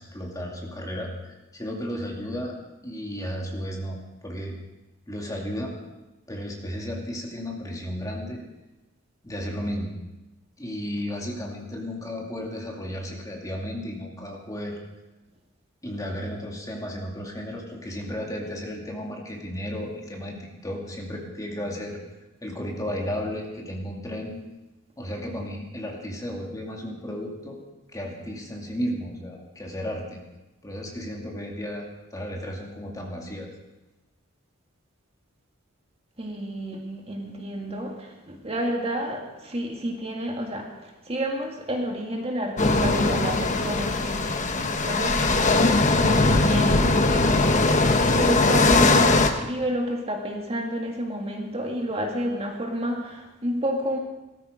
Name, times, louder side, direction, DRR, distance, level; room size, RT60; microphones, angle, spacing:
voice 1, 0.0-2.5 2.8-4.6 5.1-5.7 6.3-8.4 9.2-9.9 10.6-14.8 15.8-22.0 22.4-24.3 25.0-27.6 27.9-30.2 30.6-33.5, equal, 15° left, -1 dB, 2.4 m, -33 dB
voice 2, 36.2-47.5 48.1-54.0, equal, 30° right, 1 dB, 2.1 m, -30 dB
sound 1, 42.6-49.3, left 3 dB, 35° left, 1.1 m, -20 dB
18.0 x 14.0 x 5.1 m, 1.1 s
head